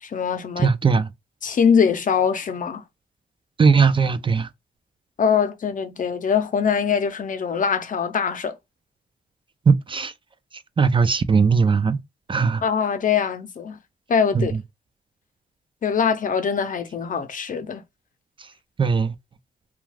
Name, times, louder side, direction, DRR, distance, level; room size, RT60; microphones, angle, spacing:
voice 1, 0.0-0.7 1.4-2.8 5.2-8.5 12.6-13.8 14.1-14.5 15.8-17.8, left 6 dB, 55° left, 0.7 m, -22 dB
voice 2, 0.6-1.1 3.6-4.5 9.7-10.1 10.5-12.0 12.3-12.6 14.3-14.6 18.4-18.5 18.8-19.1, right 5 dB, 30° right, 0.4 m, -19 dB
2.4 x 2.3 x 3.1 m
cardioid pair, 75°, 16 cm